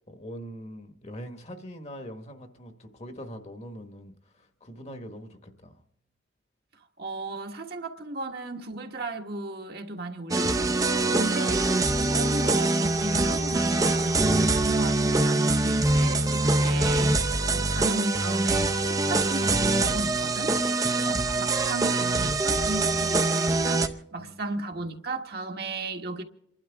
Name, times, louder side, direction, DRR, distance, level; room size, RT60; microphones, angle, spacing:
voice 1, 0.1-5.8 24.2-24.5, equal, 35° left, 1.4 m, -43 dB
voice 2, 7.0-20.5 21.0-23.8 24.1-26.2, right 2 dB, 55° right, 1.5 m, -35 dB
sound 1, 10.3-23.9, right 2 dB, 20° right, 0.7 m, -24 dB
28.0 x 12.0 x 3.5 m
head